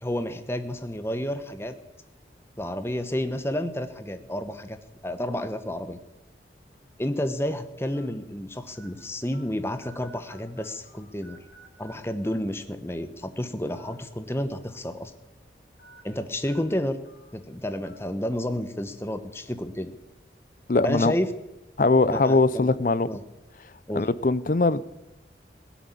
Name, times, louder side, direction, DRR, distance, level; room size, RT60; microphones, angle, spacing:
voice 1, 0.0-1.8 2.6-4.8 5.0-6.0 7.0-11.4 11.8-15.1 16.0-17.0 17.3-19.9 20.8-21.3 22.1-22.7 23.1-23.2 23.9-24.0, left 1 dB, 15° left, 10 dB, 0.9 m, -30 dB
sound 1, 5.8-6.0 6.7-6.8 7.9-8.1 8.7-8.9 9.3-9.4 9.8-11.0 11.2-11.9 12.2-12.4 13.6-13.9 14.3-14.4 15.8-16.0 16.5-16.6 17.0-17.2 17.8-18.0, right 1 dB, 65° left, 6.3 m, -52 dB
voice 2, 20.7-21.1 21.8-23.1 23.9-24.8, left 3 dB, 50° left, 18 dB, 0.6 m, -21 dB
16.5 x 10.5 x 8.4 m, 0.97 s
head